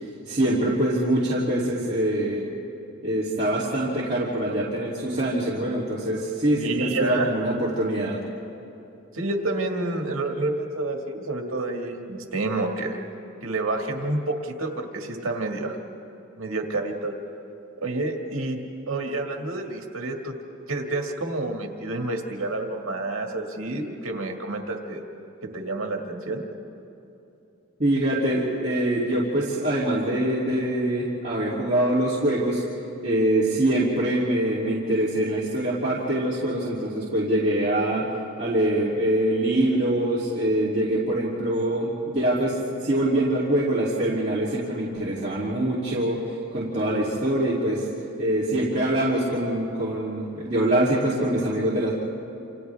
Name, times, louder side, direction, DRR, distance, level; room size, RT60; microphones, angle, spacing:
voice 1, 0.3-2.4 3.0-8.2 27.8-32.6 33.0-38.1 38.4-46.2 46.5-47.8 48.2-51.9, right 1 dB, 35° right, -8 dB, 2.9 m, -24 dB
voice 2, 6.6-7.3 9.1-13.0 13.4-15.8 16.4-17.1 17.8-18.6 18.9-20.4 20.7-25.0 25.4-26.5, right 2 dB, 75° right, 2 dB, 2.0 m, -29 dB
28.5 x 28.0 x 3.5 m, 2.9 s
head